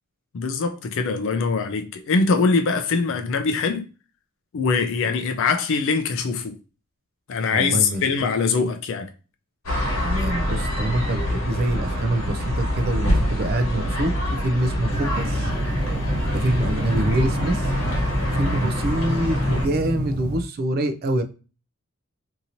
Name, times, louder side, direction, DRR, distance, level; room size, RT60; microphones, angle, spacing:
voice 1, 0.3-3.9 4.5-6.6 7.3-9.1, left 4 dB, 65° left, 0.4 m, -23 dB
voice 2, 7.5-8.0 10.0-15.5 16.3-17.7 18.3-21.2, right 1 dB, 45° right, 0.4 m, -25 dB
sound 1, 9.7-19.7, equal, 85° left, 1.1 m, -26 dB
sound 2, 14.9-20.4, equal, 10° right, 1.2 m, -28 dB
2.8 x 2.7 x 2.6 m
head